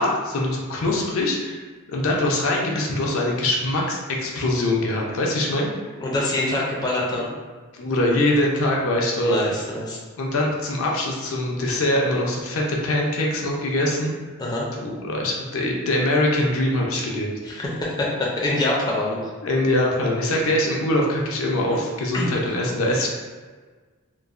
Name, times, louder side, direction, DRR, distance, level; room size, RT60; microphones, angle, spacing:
voice 1, 0.0-5.7 7.7-9.4 10.2-14.1 14.8-17.3 19.4-23.1, left 1 dB, 75° left, -2 dB, 0.5 m, -23 dB
voice 2, 6.0-7.3 9.2-10.0 14.4-14.7 17.4-19.2 22.1-22.3, left 2 dB, 20° left, -5 dB, 0.4 m, -25 dB
3.0 x 2.1 x 2.4 m, 1.4 s
head